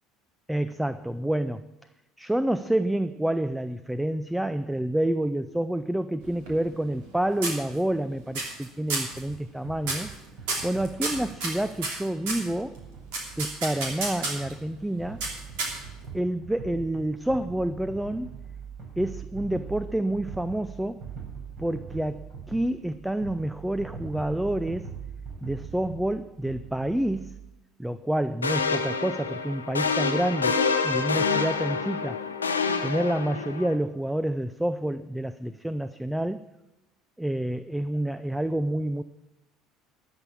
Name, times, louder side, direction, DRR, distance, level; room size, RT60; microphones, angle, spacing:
voice 1, 0.5-1.7 2.2-10.1 10.6-12.8 13.4-15.2 16.1-18.3 19.0-21.0 21.6-24.9 25.4-27.4 27.8-30.6 30.8-32.2 32.8-36.4 37.2-39.0, right 1 dB, 5° right, 13 dB, 0.5 m, -28 dB
sound 1, 6.2-7.1 7.4-8.0 8.3-8.6 8.9-9.2 9.8-10.1 10.5-12.5 13.1-14.5 15.2-16.0, right 3 dB, 70° right, 3.0 m, -31 dB
sound 2, 9.1-27.5, right 6 dB, 50° right, 5.0 m, -42 dB
sound 3, 28.4-33.7, left 5 dB, 90° left, 0.7 m, -27 dB
13.5 x 5.6 x 8.6 m, 0.99 s
hypercardioid pair, 65°, 0 cm